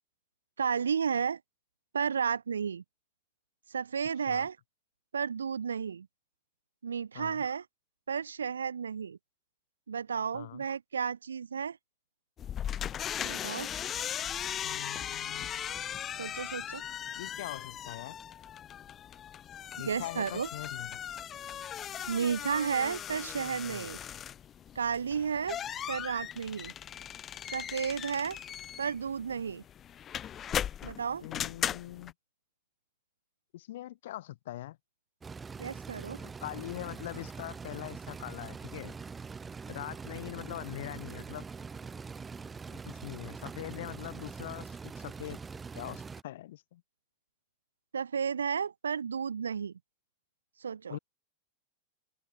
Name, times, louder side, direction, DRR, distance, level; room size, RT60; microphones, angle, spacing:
voice 1, 0.6-1.4 1.9-2.8 3.7-4.6 5.1-6.1 6.8-7.6 8.1-9.2 9.9-11.8 13.2-13.7 16.1-16.8 19.8-20.5 22.1-24.0 24.7-25.6 25.9-26.7 27.5-28.4 28.8-29.6 30.8-31.2 35.6-36.2 47.9-49.7 50.6-51.0, right 6 dB, 70° right, 1.2 m, -32 dB
voice 2, 10.3-10.6 14.6-15.5 17.2-18.2 19.8-21.0 31.2-32.1 33.5-34.8 36.2-39.0 39.7-41.4 42.7-45.4 45.7-46.8 50.9-51.0, left 14 dB, 55° left, 0.7 m, -42 dB
sound 1, 12.4-32.1, left 9 dB, 25° left, 0.4 m, -38 dB
sound 2, 35.2-46.2, right 5 dB, 15° right, 0.8 m, -43 dB
figure-of-eight pair, 90°, 0 cm